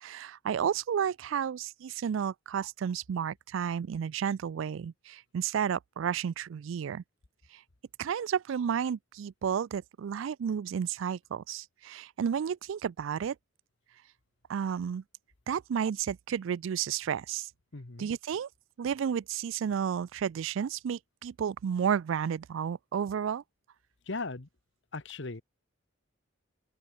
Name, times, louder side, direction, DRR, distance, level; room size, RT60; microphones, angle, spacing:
voice 1, 0.0-7.0 7.5-7.6 8.0-13.4 14.5-15.0 15.5-17.5 18.0-18.5 18.8-23.4, right 8 dB, 70° right, 0.3 m, -32 dB
voice 2, 17.7-18.1 24.1-24.5 24.9-25.4, left 3 dB, 60° left, 1.3 m, -38 dB
open air
head